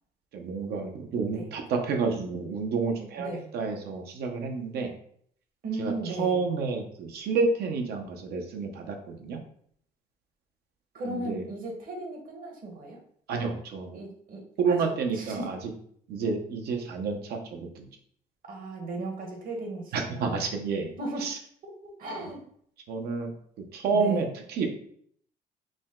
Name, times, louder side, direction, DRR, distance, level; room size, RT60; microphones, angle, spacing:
voice 1, 0.3-3.3 3.5-4.9 5.8-9.4 11.1-11.4 13.3-14.0 14.6-15.6 16.1-17.9 19.9-20.9 21.2-21.4 22.9-23.3 23.7-24.7, right 4 dB, 70° right, 3 dB, 0.9 m, -29 dB
voice 2, 5.6-6.4 10.9-13.0 13.9-14.9 15.1-15.5 18.5-20.5 21.0-21.3 21.6-21.7 22.0-22.4 23.9-24.2, right 2 dB, 55° right, 1 dB, 1.3 m, -36 dB
5.0 x 2.3 x 3.7 m, 0.63 s
cardioid pair, 110°, 17 cm